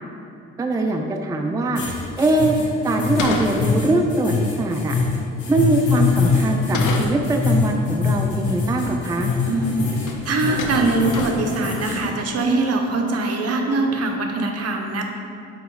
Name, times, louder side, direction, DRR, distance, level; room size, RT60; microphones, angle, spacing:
voice 1, 0.6-1.8 2.2-2.6 2.8-5.0 5.5-9.3, right 2 dB, 10° right, 3 dB, 0.4 m, -22 dB
sound 1, 1.7-12.0, left 4 dB, 70° left, 1.5 m, -23 dB
sound 2, 3.0-4.1 6.4-7.4 9.0-9.1 9.5-9.8 10.0-10.3 10.6-11.6, left 3 dB, 85° left, 0.6 m, -29 dB
voice 2, 9.5-9.9 10.2-15.0, right 3 dB, 55° right, 2 dB, 0.9 m, -22 dB
7.3 x 3.1 x 4.7 m, 2.6 s
cardioid pair, 90°, 30 cm